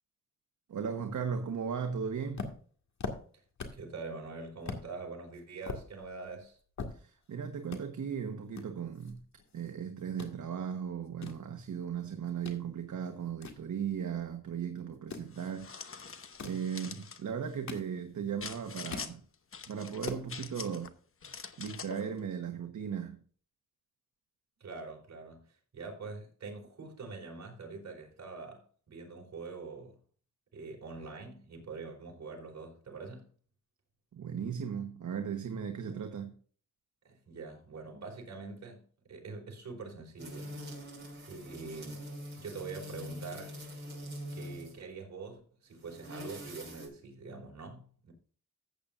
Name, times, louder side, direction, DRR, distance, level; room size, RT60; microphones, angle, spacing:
voice 1, 0.7-2.5 6.9-9.2 9.5-19.2 19.7-21.0 21.3-23.2 34.1-36.3, right 7 dB, 80° right, 1.3 m, -37 dB
sound 1, 2.3-3.9 4.2-4.3 4.6-4.9 5.3-7.3 7.6-7.8 8.5-9.7 10.0-10.3 10.9-12.6 13.0-14.3 14.9-15.3 16.2-16.7 17.3-18.3 18.6-19.2 19.6-19.7 19.9-20.3, left 4 dB, 65° left, 2.0 m, -42 dB
voice 2, 3.7-6.6 24.6-30.0 30.5-33.3 35.8-36.0 37.0-40.6 41.3-42.1 42.4-43.5 44.3-48.1, right 4 dB, 65° right, 4.7 m, -44 dB
sound 2, 15.3-17.2 18.4-19.1 19.5-20.9 21.2-22.0, left 6 dB, 45° left, 1.0 m, -45 dB
sound 3, 40.2-44.8 45.7-46.9, equal, 35° right, 5.9 m, -44 dB
14.5 x 8.6 x 2.6 m
wide cardioid pair, 100°, 30 cm